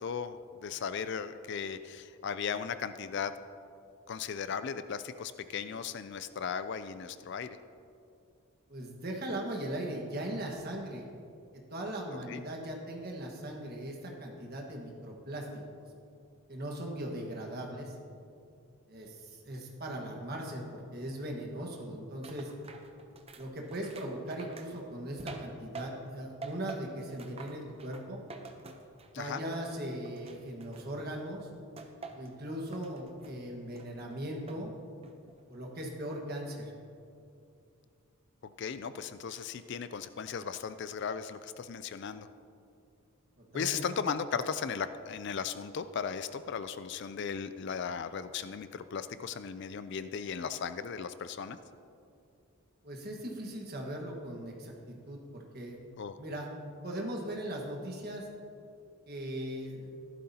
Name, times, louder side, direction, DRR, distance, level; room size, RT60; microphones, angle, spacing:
voice 1, 0.0-3.3 4.1-7.5 12.3-12.4 29.1-29.4 38.6-42.3 43.5-51.6 56.0-56.1, left 6 dB, 50° left, 12 dB, 0.3 m, -36 dB
voice 2, 8.7-11.1 11.5-15.8 16.5-17.9 18.9-22.5 23.4-28.2 29.1-31.5 32.1-34.7 35.5-36.7 43.4-43.9 52.8-58.3 59.1-60.0, right 1 dB, 45° right, 0 dB, 1.5 m, -39 dB
sound 1, 22.2-26.1 26.4-29.2 29.5-31.2 31.8-32.3 32.7-33.4 33.8-34.7 35.0-35.4, right 4 dB, 25° right, 0.7 m, -47 dB
14.0 x 11.5 x 2.8 m, 2.5 s
head